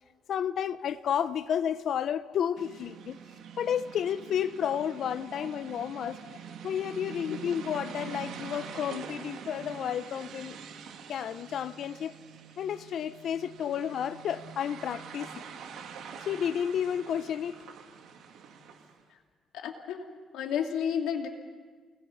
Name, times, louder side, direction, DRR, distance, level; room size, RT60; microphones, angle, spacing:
voice 1, 0.3-3.2 3.6-6.2 6.6-10.6 11.1-12.1 12.6-15.3 16.2-17.6, left 9 dB, 65° left, 0.8 m, -31 dB
sound 1, 2.6-19.0, right 7 dB, 75° right, 2.3 m, -45 dB
voice 2, 19.5-20.1 20.3-21.3, left 8 dB, 90° left, 2.5 m, -31 dB
29.0 x 20.5 x 5.9 m
cardioid pair, 90°, 0 cm